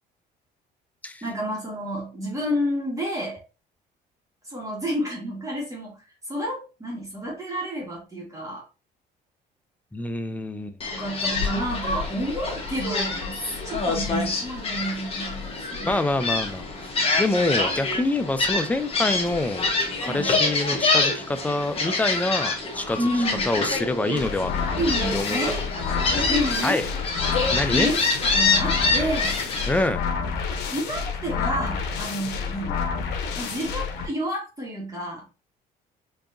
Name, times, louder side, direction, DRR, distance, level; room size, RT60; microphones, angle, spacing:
voice 1, 1.2-3.4 4.4-6.0 6.2-8.7 10.9-16.0 20.0-20.3 23.0-23.5 24.1-24.2 24.7-25.6 26.3-26.8 27.7-28.0 28.3-29.4 30.5-32.8 33.3-35.2, equal, 20° right, -3 dB, 1.5 m, -30 dB
voice 2, 9.9-10.8 15.8-16.9 17.2-19.7 20.0-23.0 23.4-24.5 25.1-25.4 26.6-26.9 27.5-27.9 29.7-30.0, left 2 dB, 10° left, 9 dB, 0.5 m, -26 dB
Gull seagull, 10.8-29.9, left 3 dB, 35° left, 1.2 m, -26 dB
sound 1, 24.2-34.1, left 5 dB, 80° left, 0.8 m, -29 dB
4.6 x 2.8 x 2.6 m, 0.31 s
cardioid pair, 110°, 17 cm